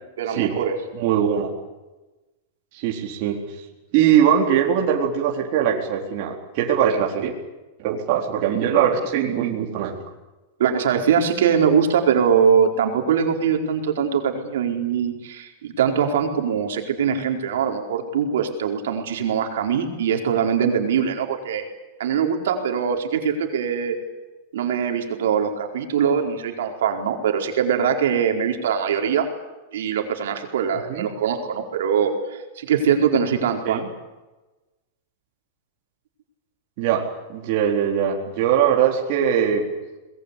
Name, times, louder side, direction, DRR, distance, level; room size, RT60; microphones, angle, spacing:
voice 1, 0.2-0.8 10.6-21.6 22.0-24.0 24.5-29.3 29.7-33.8, right 7 dB, 75° right, 3 dB, 4.6 m, -22 dB
voice 2, 1.0-1.5 2.7-3.4 3.9-7.3 7.8-10.0 30.9-31.1 33.7-33.9 36.8-39.7, right 9 dB, 40° right, 0 dB, 4.1 m, -21 dB
24.5 x 21.0 x 8.5 m, 1.1 s
supercardioid pair, 170°, 0 cm